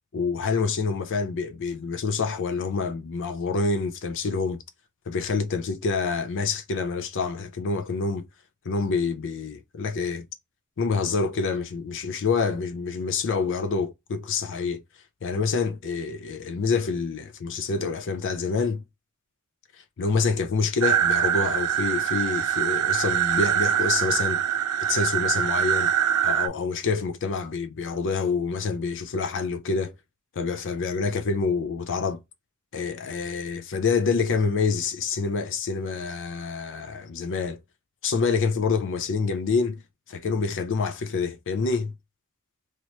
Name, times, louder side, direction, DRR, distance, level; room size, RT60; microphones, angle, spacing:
voice 1, 0.1-4.6 5.1-8.2 8.7-10.2 10.8-14.8 15.2-18.8 20.0-24.4 24.8-25.9 26.2-29.9 30.4-32.2 32.7-37.6 38.0-39.8 40.1-41.9, left 4 dB, 60° left, 0.5 m, -27 dB
sound 1, 20.8-26.5, right 9 dB, 85° right, 0.5 m, -24 dB
3.1 x 2.9 x 2.9 m
head